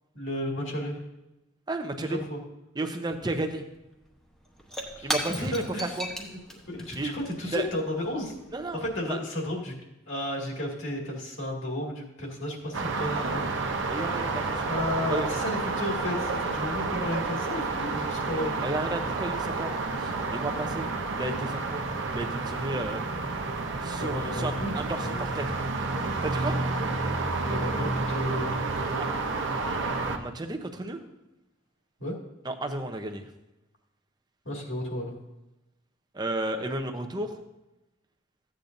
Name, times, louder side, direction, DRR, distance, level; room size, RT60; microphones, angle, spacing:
voice 1, 0.1-1.0 2.0-2.4 5.0-6.3 6.8-8.3 8.7-9.7 10.1-13.5 14.6-18.6 19.9-20.1 24.0-24.7 25.0-25.2 27.5-29.0 32.0-32.2 34.4-35.1, left 1 dB, 65° left, -2 dB, 2.3 m, -33 dB
voice 2, 1.7-2.2 2.8-3.6 5.0-6.1 6.9-7.1 7.5-7.7 8.5-9.2 13.9-14.7 15.1-15.3 18.6-19.7 20.0-21.8 22.1-23.0 23.8-25.5 26.2-26.6 29.0-29.1 30.2-31.0 32.4-33.3 36.1-37.4, right 2 dB, 20° right, 5 dB, 0.7 m, -33 dB
Shatter / Crushing, 3.7-3.8 4.1-8.9, equal, ahead, 1.0 m, -38 dB
sound 1, 12.7-30.2, right 3 dB, 65° right, 0.8 m, -30 dB
14.5 x 8.6 x 2.6 m, 0.96 s
head